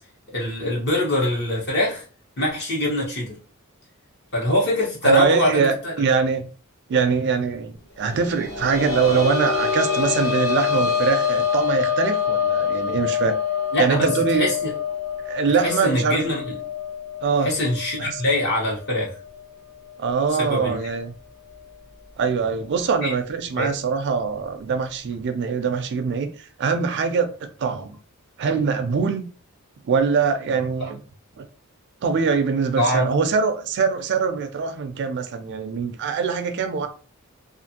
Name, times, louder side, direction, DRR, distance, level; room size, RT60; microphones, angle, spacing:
voice 1, 0.3-2.0 2.4-3.4 4.3-5.9 13.7-14.1 14.4-14.7 15.6-16.5 17.4-19.1 20.4-20.8 23.0-23.1 23.6-23.7 30.8-30.9 32.8-33.2, left 1 dB, 50° left, 1.1 m, -23 dB
voice 2, 5.0-6.5 6.9-13.4 13.8-14.5 15.3-16.2 17.2-17.5 18.0-18.2 20.0-21.1 22.2-28.0 28.4-29.3 29.8-31.0 31.4-31.5 32.0-36.9, right 5 dB, 55° right, 0.4 m, -23 dB
sound 1, 8.1-19.5 19.9-20.0 21.5-21.6, left 7 dB, 75° left, 1.3 m, -26 dB
2.5 x 2.5 x 2.7 m
head